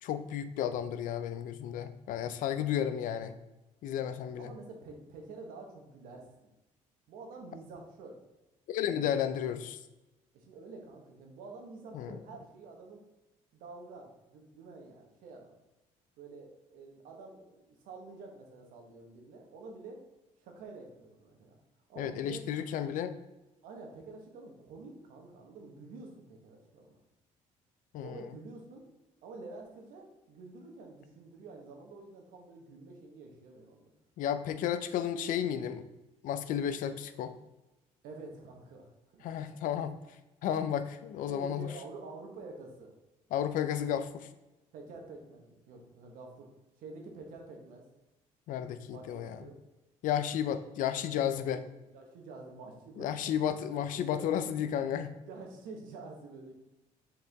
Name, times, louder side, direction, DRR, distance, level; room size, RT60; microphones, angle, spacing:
voice 1, 0.0-3.4 3.8-4.5 8.7-9.8 11.9-12.2 22.0-23.1 27.9-28.3 34.2-35.8 36.2-37.3 39.2-40.0 40.4-41.7 43.3-44.3 48.5-49.4 50.0-51.6 53.0-55.1, left 9 dB, 75° left, 11 dB, 0.6 m, -33 dB
voice 2, 4.4-6.5 7.1-8.2 8.8-9.3 10.3-13.0 13.5-15.6 16.2-20.0 20.4-21.6 21.9-22.7 23.6-27.0 28.0-28.8 29.2-33.9 38.0-39.3 41.3-42.9 44.7-46.5 46.8-47.9 48.9-49.6 51.3-53.8 54.0-54.3 55.3-56.5, right 3 dB, 85° right, 2 dB, 1.4 m, -48 dB
6.2 x 4.9 x 3.5 m, 1.0 s
cardioid pair, 100°, 14 cm